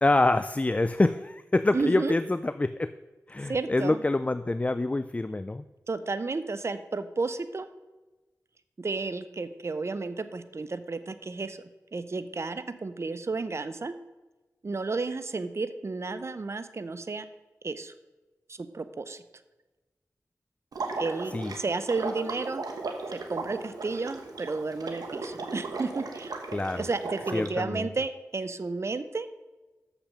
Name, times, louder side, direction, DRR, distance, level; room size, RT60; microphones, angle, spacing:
voice 1, 0.0-2.9 3.3-5.6 21.3-21.5 26.5-26.9 27.3-27.9, left 2 dB, 20° left, 12 dB, 0.3 m, -26 dB
voice 2, 1.7-2.1 3.5-4.0 5.9-7.7 8.8-11.6 11.9-13.9 14.6-17.2 17.6-17.9 18.5-19.2 21.0-22.6 23.1-26.4 26.7-29.3, right 3 dB, 45° right, 12 dB, 0.6 m, -32 dB
Water / Liquid, 20.7-27.5, right 3 dB, 90° right, 1.1 m, -36 dB
6.9 x 6.0 x 6.5 m, 1.2 s
cardioid pair, 50°, 6 cm